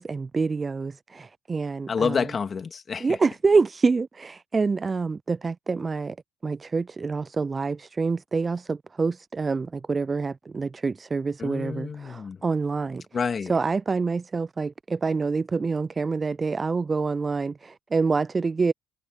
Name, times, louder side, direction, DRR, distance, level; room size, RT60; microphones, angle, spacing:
voice 1, 0.0-2.2 3.0-6.2 6.4-13.0 13.5-18.7, right 4 dB, 30° right, 0.4 m, -26 dB
voice 2, 1.9-3.2 11.4-12.4 13.1-13.5, left 5 dB, 40° left, 2.7 m, -28 dB
supercardioid pair, 65°, 0 cm